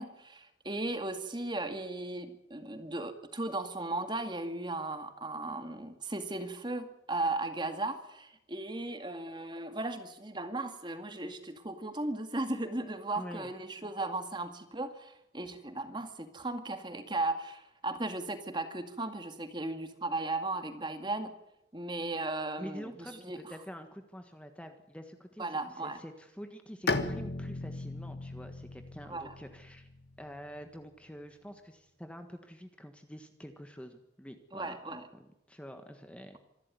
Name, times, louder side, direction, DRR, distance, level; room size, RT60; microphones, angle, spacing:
voice 1, 0.0-21.3 21.7-22.9 23.2-23.5 25.4-26.0 29.1-29.3 34.5-35.1, right 2 dB, 25° right, 8 dB, 2.1 m, -36 dB
voice 2, 13.2-13.5 22.6-25.5 25.8-29.9 30.2-36.4, equal, 5° left, 6 dB, 1.5 m, -47 dB
Bowed string instrument, 26.9-30.5, left 3 dB, 65° left, 1.6 m, -36 dB
26.0 x 12.5 x 9.5 m, 0.87 s
head